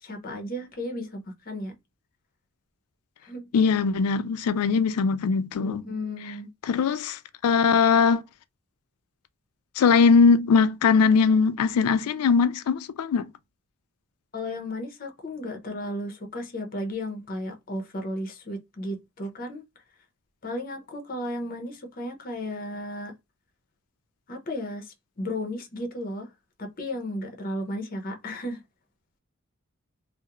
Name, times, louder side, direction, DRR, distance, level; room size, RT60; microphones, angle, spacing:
voice 1, 0.0-1.7 3.2-3.5 5.6-6.5 14.3-19.6 20.4-23.1 24.3-26.3 26.6-28.6, left 1 dB, 40° left, 0.6 m, -34 dB
voice 2, 3.5-5.8 6.6-8.2 9.8-13.3, left 5 dB, 85° left, 0.3 m, -21 dB
2.4 x 2.0 x 2.8 m
head